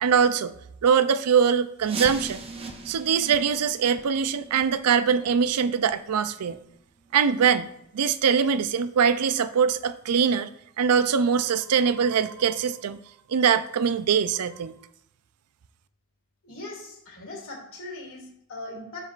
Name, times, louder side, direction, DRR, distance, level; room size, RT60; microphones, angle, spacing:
voice 1, 0.0-0.6 0.8-2.4 2.9-6.6 7.1-7.7 7.9-10.5 10.8-13.0 13.3-14.7, right 7 dB, 90° right, 13 dB, 0.4 m, -22 dB
sound 1, 1.8-7.4 7.7-7.9 8.4-8.5 9.1-9.2 9.7-9.8, right 3 dB, 25° right, 0.7 m, -40 dB
voice 2, 16.4-19.0, left 2 dB, 60° left, -2 dB, 2.6 m, -40 dB
12.5 x 4.6 x 2.5 m, 0.77 s
head